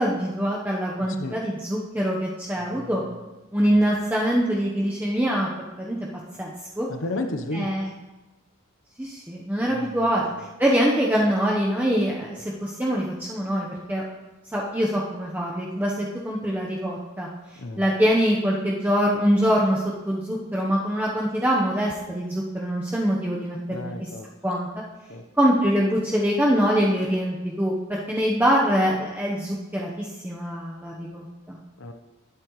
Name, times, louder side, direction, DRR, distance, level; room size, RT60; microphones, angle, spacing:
voice 1, 0.0-3.0 3.5-5.5 5.8-6.0 6.4-6.9 7.5-7.9 9.0-10.2 10.6-14.0 14.5-17.3 17.8-23.9 24.4-24.7 25.4-31.6, equal, 10° right, -4 dB, 0.9 m, -24 dB
voice 2, 1.0-1.4 2.6-2.9 6.9-7.9 9.7-10.3 17.6-17.9 23.7-24.3 25.1-25.2 31.8-31.9, left 2 dB, 65° left, 6 dB, 0.9 m, -33 dB
20.5 x 8.5 x 3.2 m, 1.1 s
head